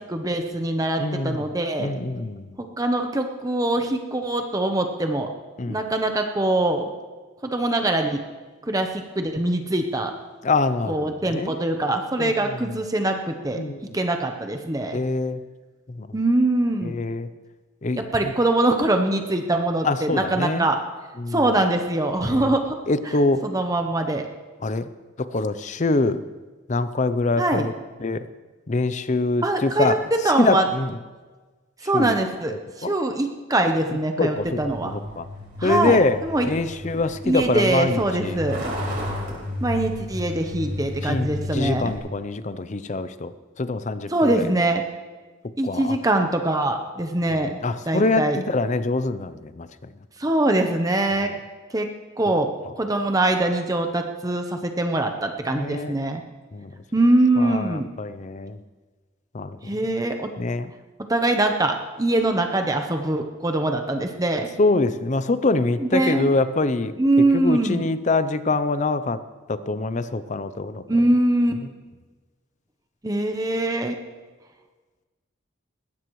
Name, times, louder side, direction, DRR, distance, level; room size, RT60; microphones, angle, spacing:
voice 1, 0.1-1.9 2.6-5.3 5.7-6.8 7.4-8.2 8.7-10.1 10.8-13.6 13.9-15.0 16.1-17.0 17.9-20.8 21.3-22.8 23.4-24.3 27.4-27.7 29.4-30.7 31.8-35.0 35.6-36.5 37.2-38.6 39.6-41.9 44.1-44.8 45.6-47.6 47.9-48.4 50.2-51.3 51.7-51.9 52.2-52.5 52.8-56.2 56.9-57.9 59.6-60.3 61.1-64.5 65.8-66.3 67.0-67.8 70.9-71.5 73.0-74.0, right 2 dB, 15° right, 4 dB, 0.8 m, -23 dB
voice 2, 1.0-1.5 1.8-2.6 5.6-5.8 10.4-11.5 12.2-12.7 13.5-13.8 14.9-15.4 15.9-16.1 16.8-17.3 17.8-18.3 19.8-20.7 21.2-21.5 22.2-22.6 22.9-23.4 24.6-24.9 25.2-26.2 26.7-27.7 28.0-28.2 28.7-30.0 30.4-31.0 31.9-32.2 32.5-32.9 34.2-35.3 35.6-36.2 36.4-38.4 41.0-43.3 43.6-44.5 45.6-46.0 47.3-49.9 51.2-51.4 55.5-55.9 56.5-56.7 57.4-58.6 59.3-59.7 60.4-60.7 64.6-69.2 69.5-70.8, left 3 dB, 35° left, 13 dB, 0.5 m, -25 dB
Truck, 34.4-42.0, left 1 dB, 50° right, 5.7 m, -33 dB
20.5 x 16.0 x 3.1 m, 1.3 s
head